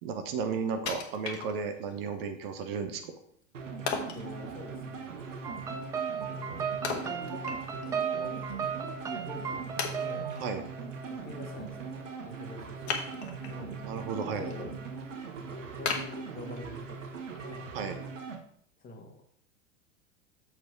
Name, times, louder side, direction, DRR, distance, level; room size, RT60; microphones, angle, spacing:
voice 1, 0.0-3.1 10.4-10.6 13.5-14.7 17.7-18.0, right 5 dB, 45° right, 8 dB, 1.1 m, -34 dB
Wood, 0.9-2.0 2.4-2.5 3.9-4.3 6.8-8.0 8.3-8.4 9.1-9.2 9.8-10.5 12.8-13.6 14.1-14.5 15.0-15.1 15.9-16.9 17.3-17.4, left 5 dB, 55° left, 1.4 m, -36 dB
sound 1, 3.5-18.4, right 5 dB, 70° right, 1.2 m, -40 dB
voice 2, 4.1-5.2 6.3-8.4 9.1-10.3 11.1-14.7 15.4-17.0 17.4-17.7 18.8-19.1, left 3 dB, 20° left, 3 dB, 1.7 m, -46 dB
sound 2, 5.4-10.5, right 7 dB, 10° right, 0.3 m, -35 dB
7.1 x 4.6 x 5.9 m, 0.66 s
figure-of-eight pair, 90°, 39 cm